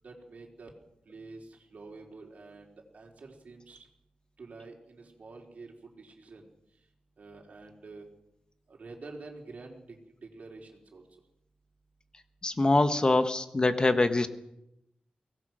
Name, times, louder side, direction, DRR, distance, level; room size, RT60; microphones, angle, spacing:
voice 1, 0.0-0.7 1.0-3.9 4.4-6.5 7.2-8.1 8.7-10.0 10.2-11.2, right 3 dB, 55° right, -1 dB, 4.4 m, -48 dB
voice 2, 12.4-14.3, left 2 dB, 30° left, 9 dB, 1.3 m, -24 dB
23.5 x 18.5 x 6.3 m, 0.82 s
wide cardioid pair, 125°, 3 cm